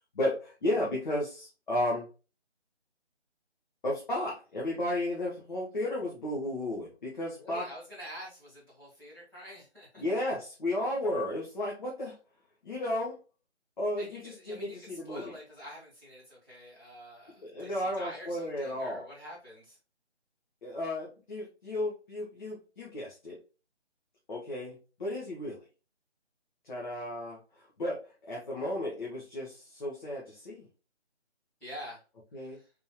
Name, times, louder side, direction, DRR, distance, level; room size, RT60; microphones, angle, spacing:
voice 1, 0.1-2.1 3.8-7.7 10.0-12.2 12.6-13.2 13.8-15.3 17.4-19.0 20.6-23.4 24.3-25.6 26.6-30.7 32.3-32.6, left 1 dB, 45° left, -4 dB, 1.5 m, -33 dB
voice 2, 7.3-10.0 14.0-19.8 31.6-32.0 32.3-32.7, equal, 5° left, -12 dB, 1.5 m, -47 dB
4.2 x 3.6 x 3.0 m, 0.32 s
figure-of-eight pair, 165°, 35 cm